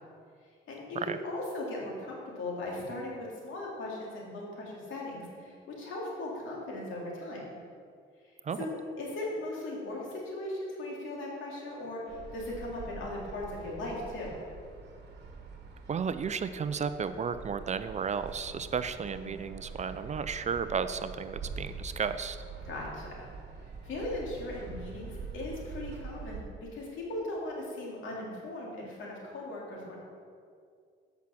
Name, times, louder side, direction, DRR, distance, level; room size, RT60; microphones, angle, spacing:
voice 1, 0.7-7.4 8.6-14.4 18.9-19.4 22.6-23.3 23.6-30.0, left 1 dB, 80° left, -3 dB, 2.5 m, -38 dB
sound 1, 12.1-26.4, right 4 dB, 55° right, 1.3 m, -45 dB
voice 2, 15.9-22.4, right 6 dB, 35° right, 12 dB, 0.4 m, -33 dB
8.3 x 5.8 x 6.3 m, 2.2 s
cardioid pair, 90°, 20 cm